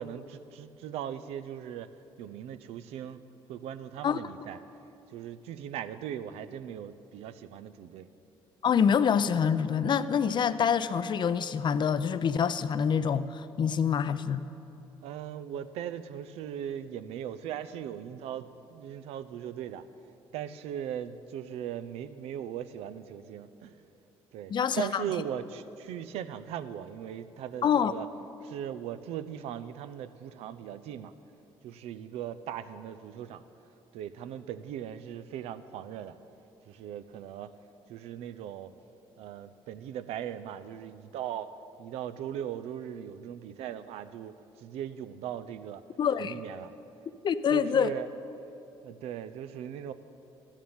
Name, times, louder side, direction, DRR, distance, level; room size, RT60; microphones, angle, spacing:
voice 1, 0.0-1.9 2.2-3.2 3.5-4.6 5.1-8.1 13.7-13.8 15.0-19.9 20.3-23.8 24.3-28.1 28.4-31.1 31.6-33.4 33.9-36.1 36.7-37.5 37.9-38.7 39.2-41.5 41.8-45.8 46.2-46.7 47.5-48.1 48.8-49.9, right 10 dB, 80° right, 12 dB, 0.5 m, -39 dB
voice 2, 8.6-14.4 24.5-25.0 27.6-27.9 46.0-46.4 47.2-47.9, left 7 dB, 45° left, 13 dB, 0.5 m, -26 dB
12.5 x 7.3 x 8.9 m, 2.9 s
supercardioid pair, 70°, 10 cm